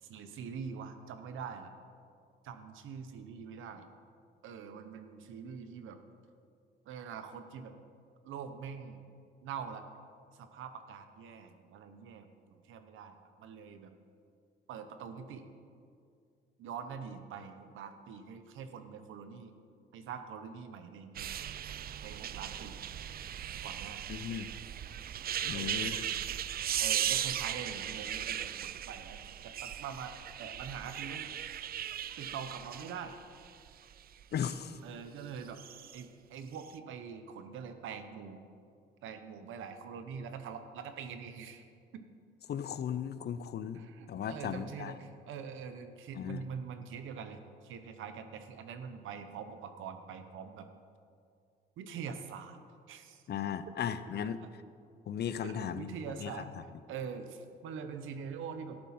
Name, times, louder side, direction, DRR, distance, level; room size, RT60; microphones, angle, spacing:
voice 1, 0.0-1.7 2.4-3.9 4.4-6.0 6.9-7.7 8.2-9.0 9.4-9.8 10.3-13.9 14.7-15.5 16.6-19.5 19.9-21.3 22.0-22.8 23.6-24.0 25.5-25.9 26.8-31.4 32.2-33.2 34.8-35.6 35.9-38.4 39.0-41.6 41.9-42.0 43.7-50.7 51.8-52.6 52.9-53.2 54.4-54.5 55.4-56.5 56.9-58.8, right 6 dB, 85° right, 9 dB, 1.0 m, -44 dB
sound 1, 21.1-34.6 35.4-36.0 36.5-36.7, right 10 dB, 50° right, 0.4 m, -37 dB
voice 2, 24.1-24.5 25.4-26.1 34.3-34.8 42.5-43.8 44.1-44.9 46.2-46.5 53.3-54.4 55.1-56.3, left 8 dB, 55° left, 13 dB, 0.6 m, -36 dB
13.0 x 11.0 x 4.3 m, 2.3 s
cardioid pair, 90°, 20 cm